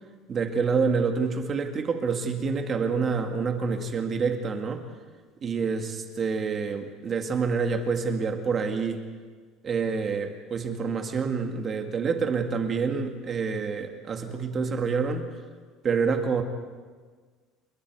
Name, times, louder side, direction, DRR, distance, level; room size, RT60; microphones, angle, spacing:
voice 1, 0.3-4.8 5.4-9.0 9.6-15.3 15.8-16.4, right 5 dB, 25° right, 5 dB, 1.8 m, -27 dB
29.0 x 22.0 x 4.8 m, 1.5 s
cardioid pair, 170°, 0 cm